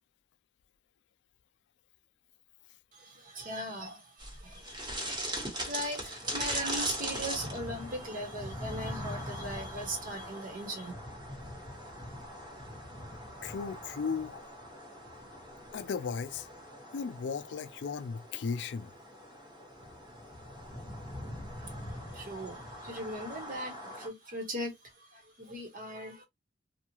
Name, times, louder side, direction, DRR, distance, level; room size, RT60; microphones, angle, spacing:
voice 1, 2.9-10.9 21.6-26.2, right 1 dB, 50° right, 1.1 m, -39 dB
sound 1, 4.2-24.1, equal, 25° right, 1.1 m, -41 dB
voice 2, 13.4-14.4 15.7-16.5 16.9-18.9, left 5 dB, 65° left, 0.4 m, -35 dB
2.8 x 2.3 x 2.9 m
head